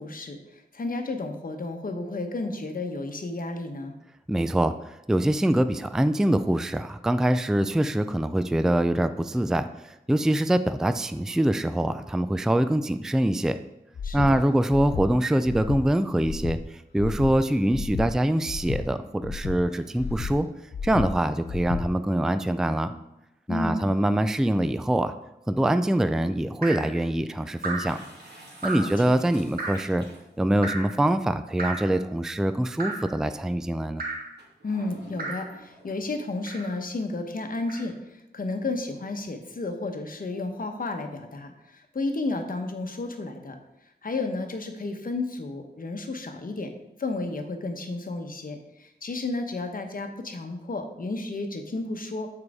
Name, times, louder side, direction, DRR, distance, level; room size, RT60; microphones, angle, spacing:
voice 1, 0.0-3.9 14.0-14.4 23.5-23.9 28.7-29.2 34.6-43.6 44.0-46.7 47.0-52.3, left 2 dB, 55° left, 5 dB, 1.0 m, -32 dB
voice 2, 4.3-13.6 14.1-20.5 20.8-22.9 23.5-25.1 25.5-28.0 28.6-30.0 30.4-34.0, right 1 dB, 5° right, 11 dB, 0.3 m, -24 dB
Breathing, 13.9-14.3 14.7-15.1 15.4-15.8 16.2-16.6 17.0-17.3 17.7-18.1 18.5-18.8 19.2-19.6 20.0-20.3 20.7-21.1 21.5-21.8, left 6 dB, 70° left, 0.7 m, -32 dB
Drip, 26.6-26.9 27.6-28.0 28.6-29.0 29.6-29.9 30.6-31.0 31.6-32.0 32.8-33.1 34.0-34.3 35.2-35.5 36.4-36.8 37.7-37.9, right 3 dB, 60° right, 1.7 m, -33 dB
sound 1, 27.8-30.6 31.5-31.6 34.4-36.0, right 1 dB, 75° right, 2.2 m, -49 dB
7.4 x 4.7 x 4.8 m, 0.92 s
wide cardioid pair, 110°, 18 cm